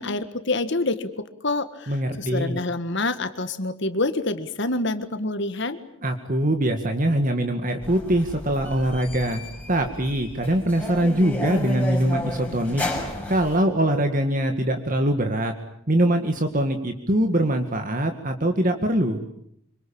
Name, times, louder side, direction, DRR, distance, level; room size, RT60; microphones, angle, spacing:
voice 1, 0.0-5.8, left 2 dB, 55° left, 10 dB, 1.7 m, -27 dB
voice 2, 1.9-2.6 6.0-9.4 9.7-12.8 13.3-15.5 15.9-19.2, right 1 dB, 40° right, 6 dB, 2.0 m, -23 dB
sound 1, 7.8-13.6, left 1 dB, 5° left, 5.9 m, -32 dB
26.0 x 25.0 x 8.8 m, 0.73 s
head